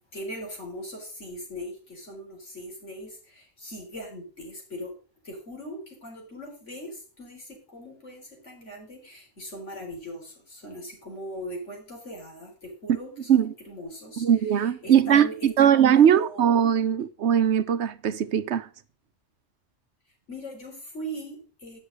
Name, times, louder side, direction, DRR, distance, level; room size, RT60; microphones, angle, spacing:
voice 1, 0.1-4.9 5.2-16.5 20.3-21.8, equal, 90° left, 4.4 m, -40 dB
voice 2, 14.2-18.7, right 9 dB, 70° right, 1.0 m, -20 dB
9.9 x 6.3 x 6.6 m
omnidirectional pair, 1.2 m